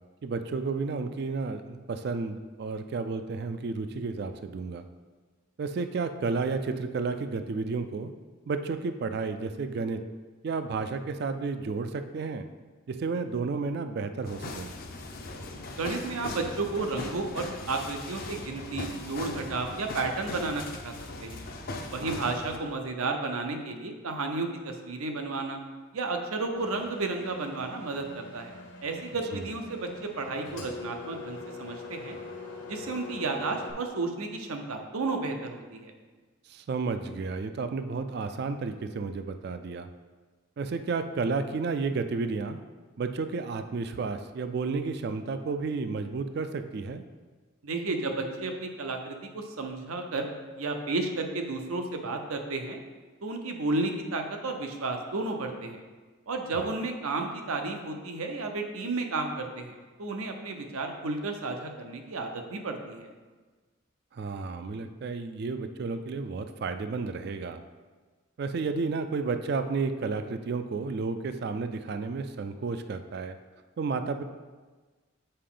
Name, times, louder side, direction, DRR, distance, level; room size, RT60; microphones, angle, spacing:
voice 1, 0.2-4.8 5.6-8.1 8.5-10.0 10.4-12.5 12.9-14.7 22.0-22.2 29.3-29.5 36.5-39.9 40.6-42.6 43.0-47.0 56.5-56.7 64.1-67.6 68.4-73.4 73.8-74.2, right 4 dB, 50° right, 9 dB, 0.3 m, -32 dB
sound 1, 14.2-22.6, left 2 dB, 45° left, 0.5 m, -39 dB
voice 2, 15.8-20.9 21.2-21.4 21.9-25.6 25.9-28.6 28.8-32.2 32.7-35.9 47.6-50.3 50.5-52.8 53.2-55.8 56.3-63.1, right 3 dB, 90° right, 4 dB, 0.8 m, -32 dB
Engine, 26.6-33.7, left 3 dB, 75° left, 1.4 m, -43 dB
6.6 x 4.6 x 3.8 m, 1.3 s
head